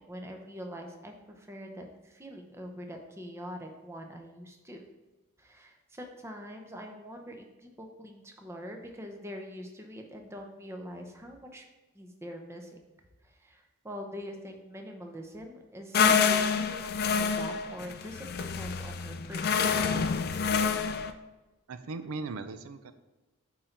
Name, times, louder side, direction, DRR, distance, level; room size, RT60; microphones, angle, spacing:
voice 1, 0.0-4.8 5.4-11.7 11.9-12.8 13.2-19.9, equal, 10° right, 3 dB, 0.7 m, -44 dB
sound 1, 15.9-21.1, left 6 dB, 45° left, 0.4 m, -27 dB
voice 2, 21.7-22.9, right 3 dB, 80° right, 10 dB, 0.5 m, -38 dB
8.5 x 3.9 x 4.5 m, 1.1 s
head